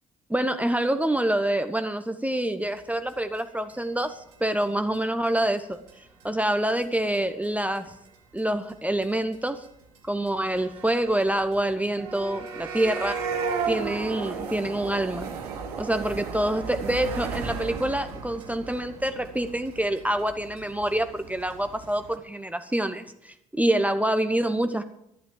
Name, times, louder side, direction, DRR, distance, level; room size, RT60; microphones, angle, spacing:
voice 1, 0.3-7.9 8.3-9.6 10.1-13.2 13.7-15.3 15.8-24.8, right 1 dB, 5° right, 9 dB, 1.1 m, -26 dB
sound 1, 3.1-3.2 3.4-3.5 3.7-3.8 4.0-4.1 4.3-4.4 4.6-4.7 4.9-5.3 5.6-5.7 5.9-6.0 6.2-6.5 6.8-6.9 7.1-7.8 8.1-8.4 8.7-8.8 9.0-9.1 9.3-9.4 9.6-9.7 9.9-10.0 10.3-22.2, right 5 dB, 80° right, 1.8 m, -35 dB
11.5 x 11.5 x 7.5 m, 0.80 s
figure-of-eight pair, 45°, 20 cm